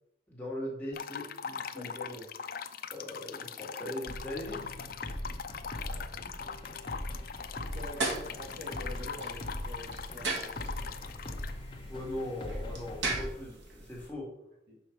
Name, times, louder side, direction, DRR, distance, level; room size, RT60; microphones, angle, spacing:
voice 1, 0.3-1.9 2.9-4.7 11.8-14.3, left 1 dB, 10° left, -5 dB, 1.9 m, -40 dB
sound 1, 0.9-11.5, left 6 dB, 50° left, 0.4 m, -41 dB
voice 2, 1.7-2.3 5.8-6.5 7.7-10.5 14.7-14.8, left 1 dB, 55° right, 0 dB, 1.7 m, -46 dB
sound 2, 4.1-13.3, left 1 dB, 25° left, 0.9 m, -41 dB
sound 3, 7.6-14.1, right 3 dB, 80° right, 1.6 m, -39 dB
6.5 x 5.5 x 4.5 m, 0.80 s
head